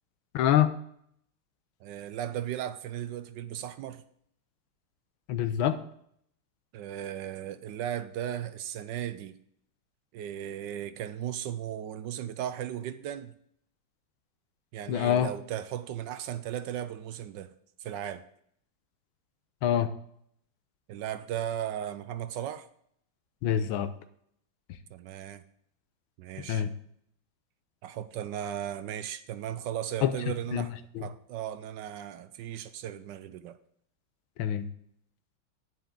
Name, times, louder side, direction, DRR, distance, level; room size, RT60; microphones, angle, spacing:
voice 1, 0.3-0.7 5.3-5.8 14.9-15.3 19.6-19.9 23.4-23.9 26.5-26.7 30.0-30.2 30.5-30.7 30.9-31.0 34.4-34.7, left 10 dB, 90° left, 1.6 m, -25 dB
voice 2, 1.8-4.0 6.7-9.4 10.1-13.3 14.7-17.5 17.8-18.2 20.9-22.7 24.9-25.4 26.2-26.7 27.8-30.7 31.0-33.6, right 10 dB, 75° right, 1.1 m, -36 dB
10.5 x 9.5 x 3.8 m
omnidirectional pair, 2.2 m